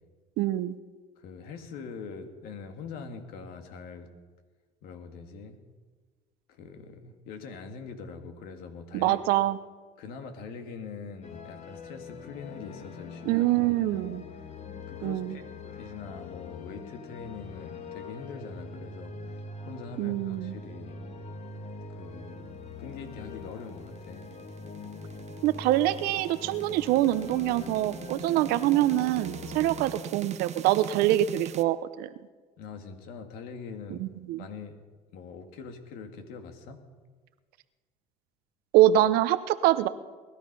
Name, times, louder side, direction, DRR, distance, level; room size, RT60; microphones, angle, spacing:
voice 1, 0.4-0.8 8.9-9.6 13.3-14.2 15.0-15.4 20.0-20.6 25.4-32.1 33.9-34.4 38.7-39.9, right 14 dB, 75° right, 13 dB, 0.8 m, -25 dB
voice 2, 1.2-4.1 4.8-5.6 6.5-9.2 10.0-14.2 14.9-15.4 15.8-20.9 21.9-24.3 32.6-34.1 34.4-34.8 35.1-36.8, left 5 dB, 75° left, 6 dB, 2.1 m, -43 dB
sound 1, 11.2-30.0, left 4 dB, 45° left, 1.7 m, -43 dB
sound 2, 23.5-31.6, right 9 dB, 45° right, 1.0 m, -42 dB
20.0 x 12.5 x 5.5 m, 1.4 s
supercardioid pair, 90°, 16 cm